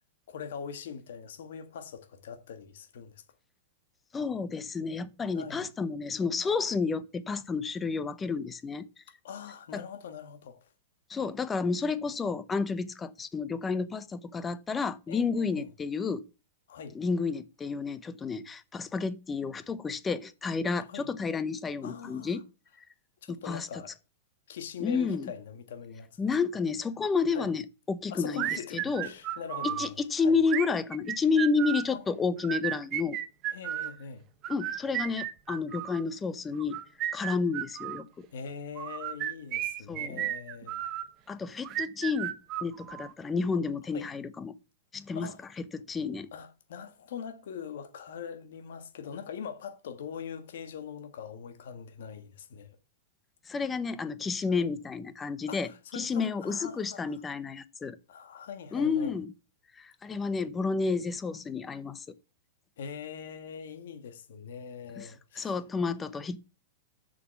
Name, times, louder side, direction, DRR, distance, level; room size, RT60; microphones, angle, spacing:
voice 1, 0.3-3.2 5.3-5.7 9.2-10.7 15.1-15.7 16.7-17.0 20.8-21.0 21.8-22.4 23.2-23.9 24.5-26.2 27.3-27.5 28.1-30.4 31.9-32.0 33.5-34.2 38.3-40.8 43.9-44.1 45.1-45.4 46.3-52.7 54.6-54.7 55.5-57.2 58.1-59.1 62.8-65.6, left 7 dB, 75° left, 1.7 m, -42 dB
voice 2, 4.1-8.9 9.7-9.8 11.1-16.2 16.9-22.4 23.3-23.7 24.8-25.3 26.2-27.6 27.9-29.1 29.8-33.2 34.5-36.8 37.1-38.3 39.9-40.3 41.3-44.5 44.9-45.3 45.7-46.3 53.5-58.0 58.7-59.3 59.8-62.1 65.0-65.1 65.4-66.4, left 4 dB, 15° left, 0.7 m, -31 dB
sound 1, 28.4-29.9 30.5-31.9 32.4-33.9 34.4-36.0 36.6-38.0 38.8-41.1 41.6-43.1, right 13 dB, 30° right, 0.8 m, -34 dB
7.3 x 6.3 x 7.0 m
supercardioid pair, 150°, 0 cm